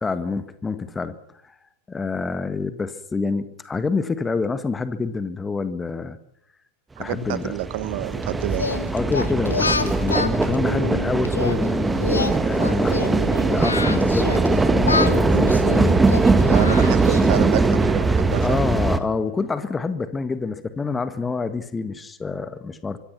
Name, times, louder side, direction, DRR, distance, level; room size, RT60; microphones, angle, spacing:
voice 1, 0.0-1.2 1.9-6.2 7.0-7.5 8.9-13.0 13.4-16.0 16.7-16.8 18.4-23.0, left 4 dB, 15° left, 13 dB, 1.7 m, -27 dB
voice 2, 7.0-8.8 16.5-18.6, right 15 dB, 50° right, 16 dB, 1.4 m, -28 dB
sound 1, 7.1-19.0, right 3 dB, 10° right, 1.7 m, -20 dB
Singing, 8.5-11.6 12.0-14.5 14.8-17.4, left 4 dB, 75° left, 1.5 m, -27 dB
24.5 x 23.5 x 6.0 m, 0.77 s
figure-of-eight pair, 90°, 0 cm